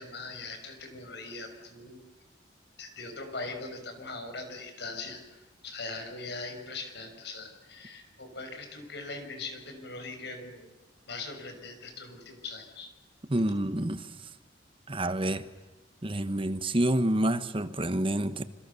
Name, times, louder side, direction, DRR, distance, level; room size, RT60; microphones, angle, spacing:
voice 1, 0.0-2.0 2.8-10.7 11.1-12.9, left 3 dB, 65° left, 6.0 m, -41 dB
voice 2, 13.3-14.1 14.9-15.5 16.0-18.4, right 1 dB, 30° right, 1.1 m, -28 dB
27.0 x 26.5 x 6.9 m
head